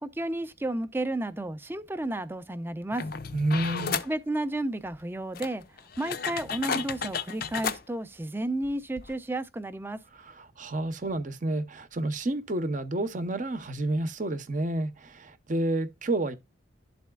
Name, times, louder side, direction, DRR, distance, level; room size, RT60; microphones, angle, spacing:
voice 1, 0.0-3.0 4.0-5.6 6.0-10.0, right 1 dB, 10° right, 0.5 m, -32 dB
sound 1, 2.9-4.1 4.9-5.0 5.3-7.8 8.6-8.7 9.0-9.1, left 6 dB, 50° left, 0.5 m, -33 dB
voice 2, 3.3-4.0 10.1-16.4, right 2 dB, 40° right, 0.7 m, -30 dB
11.5 x 4.2 x 2.2 m
head